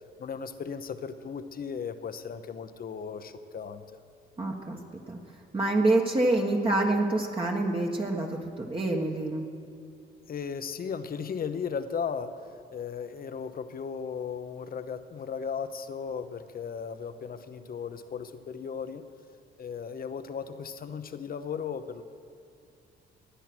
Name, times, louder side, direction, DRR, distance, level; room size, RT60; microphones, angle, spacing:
voice 1, 0.2-3.8 10.3-19.0 19.6-22.0, left 6 dB, 45° left, 11 dB, 1.0 m, -36 dB
voice 2, 4.4-4.8 5.1-5.2 5.5-9.5, right 2 dB, 25° right, -1 dB, 1.5 m, -26 dB
19.5 x 9.2 x 6.2 m, 2.5 s
cardioid pair, 90°, 20 cm